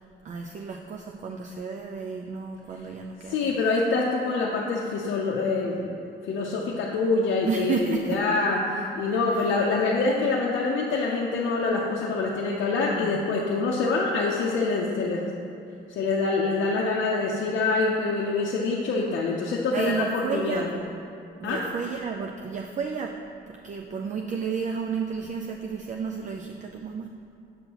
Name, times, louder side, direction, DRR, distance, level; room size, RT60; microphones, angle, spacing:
voice 1, 0.2-3.6 7.5-8.2 9.1-9.5 12.8-13.2 19.7-21.0 21.4-23.1 23.5-27.1, right 6 dB, 40° right, 2 dB, 0.4 m, -32 dB
voice 2, 3.3-6.0 6.3-15.3 15.9-20.7 21.4-21.6, left 3 dB, 70° left, -2 dB, 0.6 m, -25 dB
6.9 x 5.4 x 2.9 m, 2.6 s
cardioid pair, 90°, 20 cm